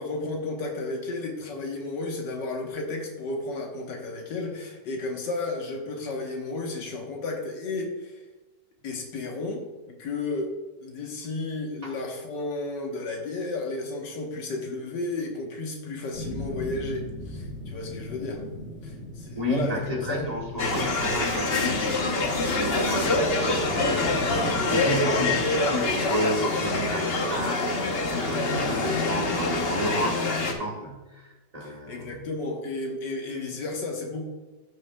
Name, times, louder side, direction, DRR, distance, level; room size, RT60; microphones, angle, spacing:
voice 1, 0.0-8.2 8.8-10.5 10.8-18.4 18.8-19.8 20.1-20.3 28.3-29.2 31.6-34.2, left 3 dB, 80° left, 1 dB, 1.8 m, -33 dB
sound 1, 16.1-25.1, left 1 dB, 60° right, 2.1 m, -38 dB
voice 2, 19.3-22.0 22.5-32.3, equal, 25° right, -2 dB, 1.4 m, -32 dB
sound 2, 20.6-30.5, left 2 dB, 45° left, 0.9 m, -25 dB
14.0 x 6.4 x 2.2 m, 1.2 s
omnidirectional pair, 1.9 m